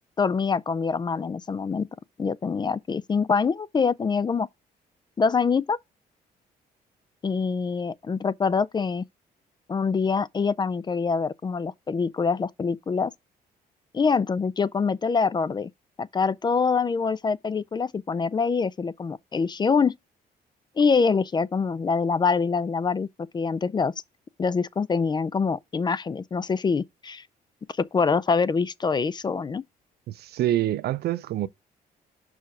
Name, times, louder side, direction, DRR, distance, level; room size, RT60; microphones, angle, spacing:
voice 1, 0.2-1.9 2.2-4.5 5.2-5.8 7.2-9.0 9.7-13.1 13.9-15.7 16.0-20.0 20.8-23.1 23.3-23.9 24.4-27.2 27.8-29.6, left 5 dB, 25° left, 0.4 m, -25 dB
voice 2, 30.1-31.5, right 13 dB, 75° right, 0.5 m, -26 dB
5.7 x 4.7 x 4.7 m
cardioid pair, 100°, 17 cm